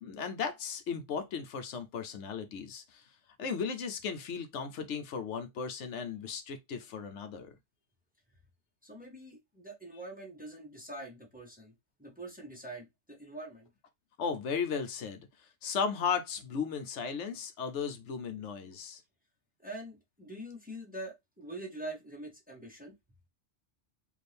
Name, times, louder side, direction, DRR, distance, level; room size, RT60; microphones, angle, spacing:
voice 1, 0.0-3.1 3.4-7.5 14.2-19.0, left 6 dB, 75° left, 1.0 m, -36 dB
voice 2, 8.8-11.7 12.0-13.7 19.6-22.9, right 1 dB, 10° right, 1.0 m, -44 dB
4.3 x 2.7 x 3.3 m
omnidirectional pair, 1.2 m